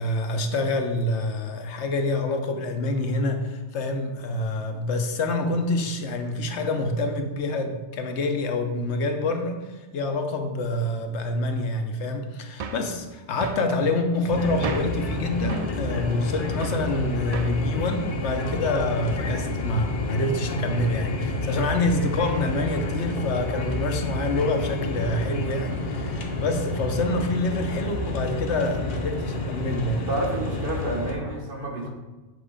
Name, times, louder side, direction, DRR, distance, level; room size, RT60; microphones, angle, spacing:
voice 1, 0.0-30.0, left 2 dB, 75° left, 5 dB, 1.0 m, -27 dB
sound 1, 12.6-12.9 13.4-13.7 14.6-15.0 15.5-15.8 16.6-16.9 17.3-17.6, right 5 dB, 75° right, 0.3 m, -34 dB
sound 2, 14.3-31.1, left 1 dB, 50° left, 0.9 m, -30 dB
voice 2, 29.9-31.9, right 1 dB, 50° right, -1 dB, 1.3 m, -29 dB
7.9 x 2.9 x 4.9 m, 1.2 s
omnidirectional pair, 1.2 m